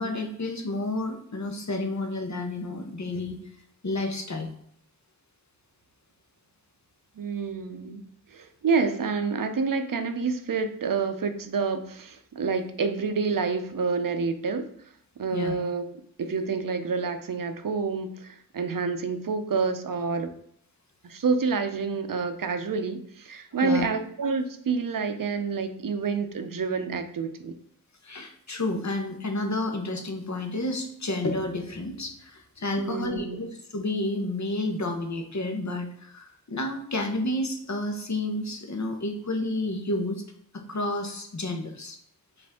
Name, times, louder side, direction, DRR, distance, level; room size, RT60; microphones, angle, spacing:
voice 1, 0.0-3.4 3.8-4.5 15.3-15.5 23.6-23.9 28.0-40.2 40.5-42.0, left 2 dB, 50° left, 5 dB, 0.8 m, -30 dB
voice 2, 7.2-8.0 8.3-14.7 15.2-15.8 16.2-20.3 21.0-27.5 32.8-33.5, right 4 dB, 65° right, 8 dB, 0.5 m, -28 dB
4.9 x 2.5 x 3.5 m, 0.68 s
wide cardioid pair, 60°, 35 cm